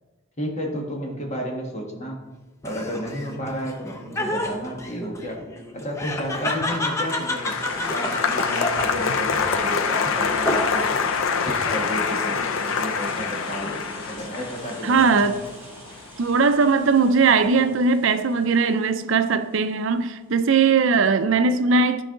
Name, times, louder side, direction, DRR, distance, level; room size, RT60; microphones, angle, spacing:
voice 1, 0.4-2.2 2.6-5.4 5.7-7.6 7.9-10.9 11.4-15.3, equal, 35° left, 0 dB, 1.4 m, -32 dB
Laughter, 2.6-11.1 11.5-12.2, left 1 dB, 15° left, 0.7 m, -30 dB
Applause, 6.5-16.9 17.1-17.7, left 5 dB, 80° left, 0.5 m, -26 dB
sound 1, 7.5-20.0, right 1 dB, 10° right, 1.8 m, -43 dB
voice 2, 14.8-15.4 16.2-22.0, right 4 dB, 65° right, 10 dB, 0.5 m, -19 dB
13.0 x 4.6 x 3.8 m, 1.2 s
head